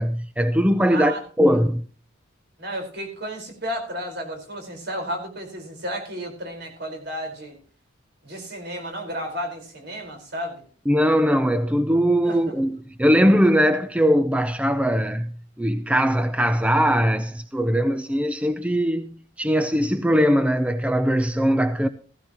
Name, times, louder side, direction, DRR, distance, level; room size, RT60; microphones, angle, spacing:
voice 1, 0.0-1.8 10.9-21.9, equal, 5° right, 0.5 m, -21 dB
voice 2, 0.9-1.2 2.6-7.6 8.2-10.6 12.2-12.5, equal, 55° right, 4.5 m, -32 dB
15.5 x 15.5 x 3.0 m
head